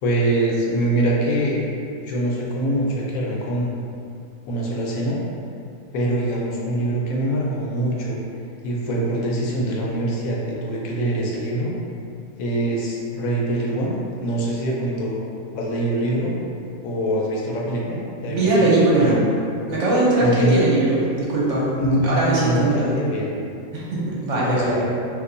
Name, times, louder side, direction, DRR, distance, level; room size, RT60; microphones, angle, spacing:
voice 1, 0.0-1.6 2.0-3.7 4.5-5.2 5.9-8.2 8.6-11.7 12.4-13.9 14.2-15.2 15.6-16.3 16.8-19.2 20.2-20.6 21.8-23.3 24.4-24.9, right 1 dB, 90° left, -3 dB, 1.1 m, -24 dB
voice 2, 18.2-19.2 19.7-23.1 23.7-24.8, right 2 dB, 65° right, -7 dB, 1.0 m, -20 dB
2.6 x 2.2 x 3.8 m, 2.5 s
omnidirectional pair, 1.4 m